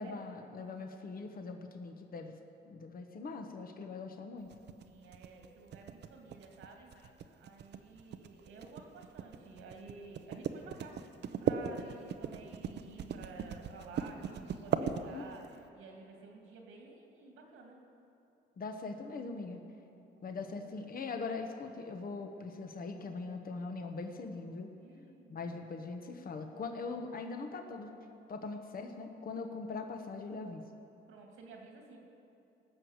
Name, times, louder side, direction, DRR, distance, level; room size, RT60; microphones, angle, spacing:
voice 1, 0.0-2.3 2.6-4.5 7.0-7.1 14.7-15.2 18.6-19.6 20.2-24.7 25.3-27.9 28.3-30.6, left 4 dB, 45° left, 5 dB, 1.2 m, -41 dB
sound 1, 4.5-15.5, right 8 dB, 60° right, 0.7 m, -38 dB
voice 2, 4.8-7.1 7.4-11.0 11.4-17.8 20.3-20.8 24.8-25.4 31.1-32.0, right 3 dB, 90° right, 1 dB, 2.4 m, -52 dB
18.0 x 6.3 x 8.1 m, 2.7 s
cardioid pair, 90°, 20 cm